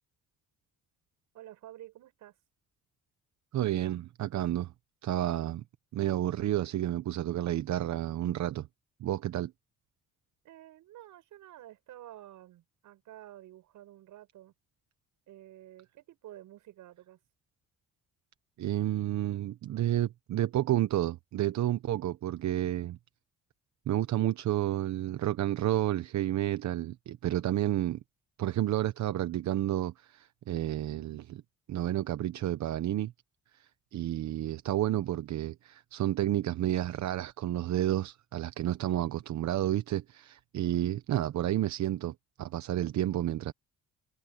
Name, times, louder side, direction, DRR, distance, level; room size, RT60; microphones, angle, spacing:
voice 1, 1.3-2.3 10.4-14.5 15.3-17.2, right 13 dB, 85° right, 7.6 m, -50 dB
voice 2, 3.5-4.7 5.0-5.6 5.9-8.7 9.0-9.5 18.6-23.0 23.9-28.0 28.4-31.4 31.7-33.1 33.6-43.5, right 13 dB, 65° right, 0.9 m, -30 dB
cardioid pair, 90°, 30 cm